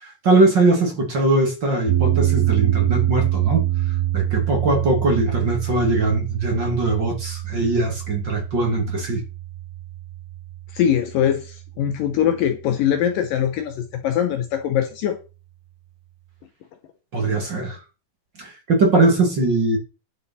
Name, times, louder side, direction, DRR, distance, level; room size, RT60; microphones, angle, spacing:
voice 1, 0.0-3.7 4.1-9.2 17.1-17.8 18.4-19.8, right 2 dB, 35° right, 2.3 m, -20 dB
sound 1, 1.9-12.1, right 15 dB, 80° right, 3.1 m, -25 dB
voice 2, 10.7-15.2, left 9 dB, 75° left, 2.2 m, -22 dB
10.5 x 7.0 x 4.3 m
omnidirectional pair, 4.8 m